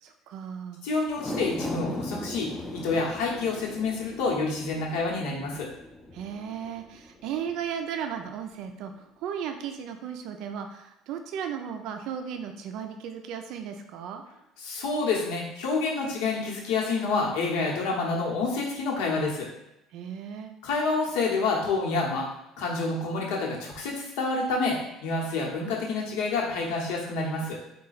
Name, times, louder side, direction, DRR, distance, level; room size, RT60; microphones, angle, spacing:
voice 1, 0.0-0.8 6.1-14.2 19.9-20.5, right 8 dB, 65° right, 5 dB, 0.4 m, -35 dB
voice 2, 0.8-5.7 14.6-19.5 20.6-22.3 22.6-27.6, left 3 dB, 90° left, -2 dB, 1.0 m, -28 dB
sound 1, 1.1-7.6 8.0-8.1, left 1 dB, 10° left, 0.5 m, -38 dB
3.8 x 2.2 x 4.0 m, 0.87 s
cardioid pair, 135°, 0 cm